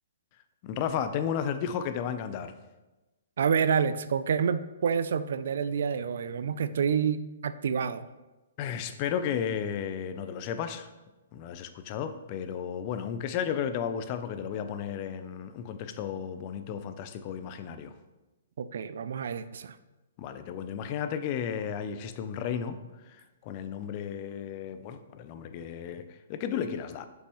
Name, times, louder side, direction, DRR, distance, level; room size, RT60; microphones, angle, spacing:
voice 1, 0.6-2.5 8.6-10.9 11.3-17.9 20.2-22.8 23.0-27.1, left 8 dB, 40° left, 10 dB, 0.5 m, -33 dB
voice 2, 3.4-8.1 18.6-19.8, right 7 dB, 65° right, 13 dB, 0.4 m, -28 dB
6.5 x 5.4 x 3.1 m, 1.1 s
hypercardioid pair, 135°, 0 cm